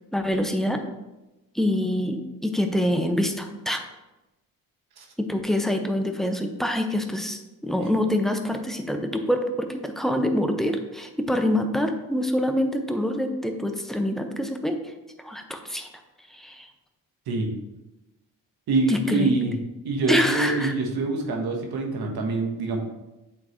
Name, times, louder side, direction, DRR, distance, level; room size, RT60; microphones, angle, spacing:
voice 1, 0.1-0.8 1.5-3.8 5.2-14.8 15.2-15.9 16.3-16.7 18.9-19.5 20.1-20.7, left 1 dB, ahead, 5 dB, 0.8 m, -25 dB
voice 2, 18.7-19.5 19.8-22.8, right 3 dB, 70° right, 1 dB, 1.3 m, -25 dB
8.4 x 3.7 x 3.1 m, 1.0 s
supercardioid pair, 60°, 39 cm